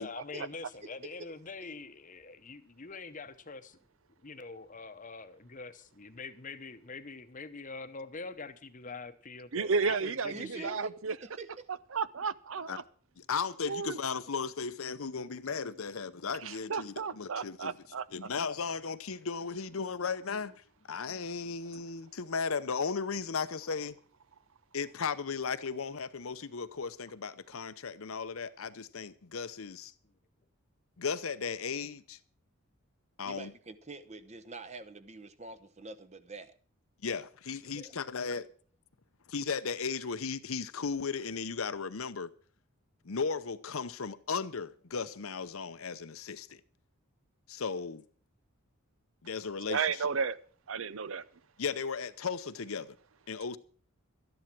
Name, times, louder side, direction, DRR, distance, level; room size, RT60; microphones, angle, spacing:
voice 1, 0.0-3.8 4.2-10.7 30.0-30.1, left 4 dB, 35° left, 0.9 m, -44 dB
voice 2, 9.5-11.1 11.9-12.8 13.7-14.0 16.4-18.0 49.7-50.4 50.7-51.2, right 5 dB, 65° right, 0.6 m, -32 dB
voice 3, 10.3-10.9 11.2-11.7 33.2-36.5 37.8-37.9, right 3 dB, 30° right, 1.0 m, -45 dB
voice 4, 13.2-17.8 18.1-24.0 24.7-29.9 31.0-32.2 33.2-33.5 37.0-38.5 39.3-42.3 43.0-46.6 47.5-48.0 49.2-50.1 51.6-52.9 53.3-53.6, left 5 dB, 70° left, 0.8 m, -36 dB
13.0 x 10.5 x 6.1 m
head